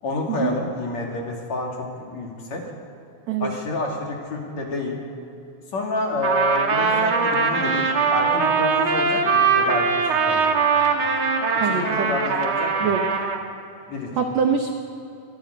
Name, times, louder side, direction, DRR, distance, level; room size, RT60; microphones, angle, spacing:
voice 1, 0.0-2.6 3.4-5.0 5.7-11.1 11.5-12.9 13.9-14.1, left 2 dB, 45° left, 0 dB, 3.2 m, -29 dB
Trumpet, 6.2-13.4, right 5 dB, 55° right, 1.5 m, -21 dB
voice 2, 11.6-12.1 12.8-13.0 14.2-14.7, right 6 dB, 75° right, 4 dB, 1.6 m, -23 dB
25.0 x 11.0 x 9.5 m, 2.9 s
omnidirectional pair, 4.8 m